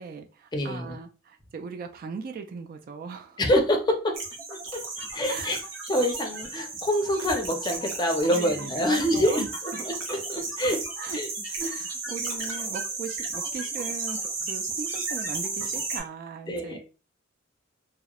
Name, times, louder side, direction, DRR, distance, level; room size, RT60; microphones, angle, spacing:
voice 1, 0.0-3.4 5.2-5.6 8.3-9.5 9.7-9.8 11.0-11.2 11.6-16.8, right 5 dB, 50° right, 5 dB, 0.3 m, -38 dB
voice 2, 0.5-0.9 3.4-4.2 4.5-4.8 5.1-5.6 5.9-10.8 11.1-11.3 11.6-11.7 16.5-16.8, equal, 20° left, 3 dB, 0.5 m, -26 dB
sound 1, 4.1-16.0, right 3 dB, 90° right, 0.7 m, -34 dB
2.9 x 2.0 x 2.3 m, 0.33 s
head